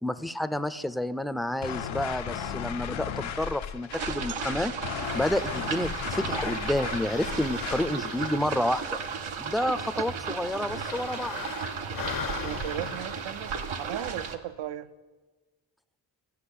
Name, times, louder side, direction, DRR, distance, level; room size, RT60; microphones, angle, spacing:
voice 1, 0.0-4.7 5.1-9.0 9.4-11.5, left 1 dB, ahead, 12 dB, 0.4 m, -29 dB
sound 1, 1.6-8.0, left 8 dB, 85° left, 0.7 m, -35 dB
sound 2, 3.9-14.4, right 6 dB, 85° right, 0.9 m, -35 dB
sound 3, 5.0-14.3, left 7 dB, 45° left, 0.6 m, -42 dB
voice 2, 12.4-14.9, right 11 dB, 65° right, 15 dB, 0.6 m, -36 dB
12.0 x 5.2 x 8.3 m, 1.3 s
cardioid pair, 50°, 46 cm